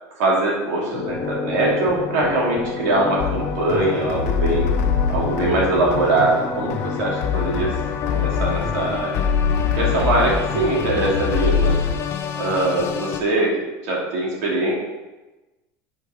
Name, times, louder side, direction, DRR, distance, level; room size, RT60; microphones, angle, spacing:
voice 1, 0.2-4.7 5.1-7.7 8.1-9.3 9.7-11.8 12.3-13.5 13.8-14.7, right 2 dB, 85° right, -3 dB, 2.9 m, -22 dB
sound 1, 0.9-13.2, left 7 dB, 30° left, 0.7 m, -29 dB
sound 2, 3.2-11.9, left 6 dB, 85° left, 1.1 m, -24 dB
8.2 x 4.8 x 5.1 m, 1.1 s
supercardioid pair, 150°, 8 cm